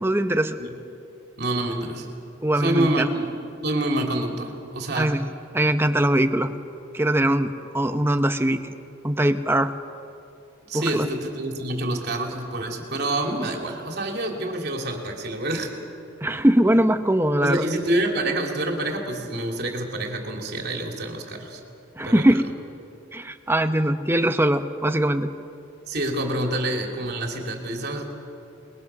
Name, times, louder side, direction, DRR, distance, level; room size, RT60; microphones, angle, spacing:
voice 1, 0.0-0.6 2.4-3.1 4.9-6.5 6.9-8.7 9.0-9.7 10.7-11.1 16.2-17.6 22.0-22.4 23.1-25.3, right 1 dB, 10° right, 8 dB, 0.9 m, -21 dB
voice 2, 1.4-2.1 2.6-3.3 3.6-5.2 10.7-15.7 17.4-21.6 22.0-22.3 25.9-28.1, right 1 dB, 55° right, 2 dB, 3.1 m, -27 dB
29.0 x 21.0 x 6.1 m, 2.7 s
head